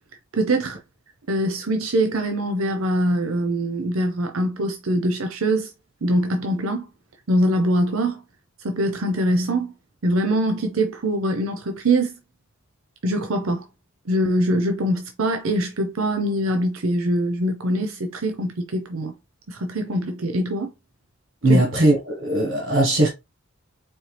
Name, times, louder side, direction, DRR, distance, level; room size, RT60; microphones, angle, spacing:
voice 1, 0.3-0.8 1.3-5.7 6.0-6.9 7.3-8.2 8.6-9.7 10.0-12.1 13.0-13.6 14.1-19.1 19.5-20.7 21.5-21.6, right 1 dB, 85° right, 0.7 m, -23 dB
voice 2, 21.4-23.1, right 1 dB, 65° right, 1.4 m, -19 dB
4.4 x 3.1 x 3.3 m
head